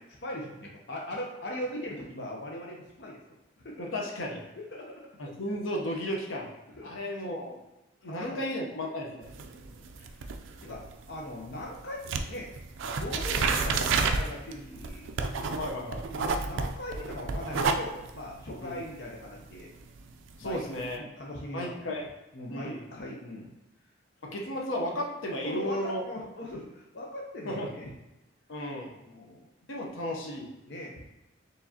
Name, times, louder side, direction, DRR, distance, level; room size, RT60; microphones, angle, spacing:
voice 1, 0.0-3.2 3.6-3.9 4.6-5.0 6.7-6.9 8.0-8.5 9.5-10.3 10.6-12.5 13.0-15.1 16.1-19.7 20.4-20.6 21.0-22.0 22.3-23.5 24.3-24.4 25.4-27.9 29.0-29.4 30.6-31.0, left 1 dB, 60° left, -2 dB, 0.6 m, -40 dB
voice 2, 3.8-4.4 5.2-6.5 6.8-7.6 8.0-9.3 10.6-10.8 13.3-13.4 15.6-16.1 18.6-18.7 20.4-21.0 21.5-22.0 22.5-22.9 24.2-26.0 27.5-27.7 28.5-28.9 29.7-30.5, left 1 dB, 90° left, 0 dB, 0.8 m, -34 dB
sound 1, 9.2-11.8 12.0-20.9, right 4 dB, 80° right, 0.4 m, -31 dB
4.7 x 3.2 x 2.8 m, 0.97 s
head